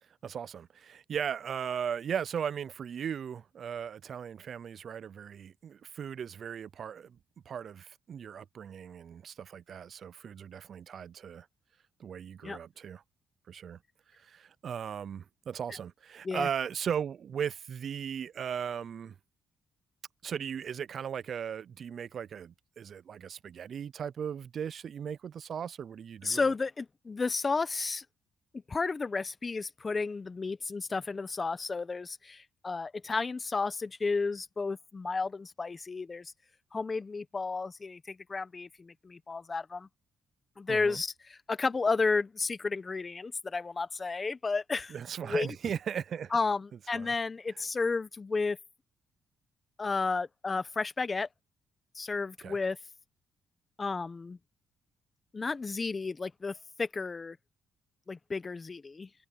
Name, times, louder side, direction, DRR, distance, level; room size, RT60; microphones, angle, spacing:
voice 1, 0.2-7.2 7.5-11.5 12.0-13.0 13.5-13.8 14.1-19.1 20.2-26.4 40.7-41.0 44.9-46.3 46.9-47.1 52.4-52.6, right 8 dB, 55° right, 0.5 m, -37 dB
voice 2, 26.2-28.0 28.7-36.3 36.7-39.9 40.6-45.0 45.2-45.5 46.3-48.6 49.8-51.3 51.9-52.8 53.8-54.4 55.3-57.4 58.1-59.1, left 4 dB, 30° left, 1.0 m, -32 dB
cardioid pair, 90°, 0 cm